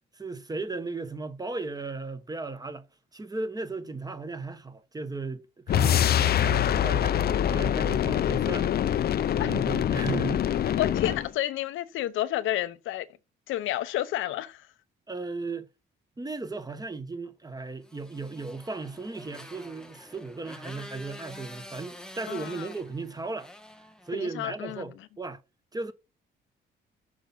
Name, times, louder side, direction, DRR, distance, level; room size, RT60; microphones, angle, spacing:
voice 1, 0.1-2.9 3.1-9.1 9.3-10.8 11.1-11.2 15.1-15.7 16.2-23.5 24.1-25.4 25.7-25.9, right 3 dB, 20° right, 1.1 m, -36 dB
sound 1, 5.7-11.3, left 10 dB, 50° left, 0.5 m, -25 dB
voice 2, 10.8-13.1 13.5-14.7 22.3-22.7 24.1-24.9, left 13 dB, 85° left, 0.8 m, -30 dB
Motorcycle, 17.8-24.5, left 1 dB, 5° left, 1.1 m, -47 dB
6.4 x 5.6 x 5.4 m
cardioid pair, 90°, 20 cm